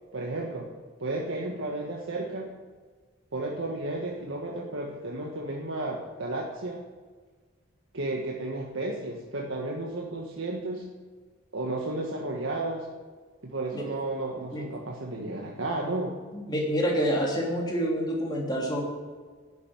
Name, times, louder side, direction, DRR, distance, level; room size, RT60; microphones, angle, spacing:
voice 1, 0.1-0.7 1.0-2.5 3.3-6.8 7.9-10.8 11.5-12.9 13.4-16.2, right 2 dB, 75° right, -1 dB, 1.5 m, -33 dB
voice 2, 16.3-18.8, equal, 20° left, -2 dB, 3.2 m, -27 dB
10.0 x 8.1 x 9.7 m, 1.4 s
head